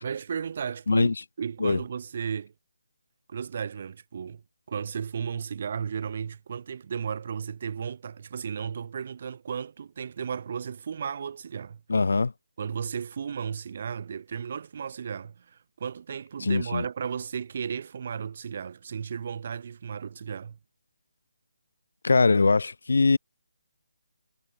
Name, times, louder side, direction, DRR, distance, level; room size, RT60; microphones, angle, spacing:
voice 1, 0.0-2.5 3.3-4.4 4.7-11.8 12.6-20.6, right 7 dB, 40° right, 1.7 m, -34 dB
voice 2, 11.9-12.3 16.4-16.8 22.0-23.2, left 3 dB, 75° left, 1.4 m, -22 dB
hypercardioid pair, 165°, 0 cm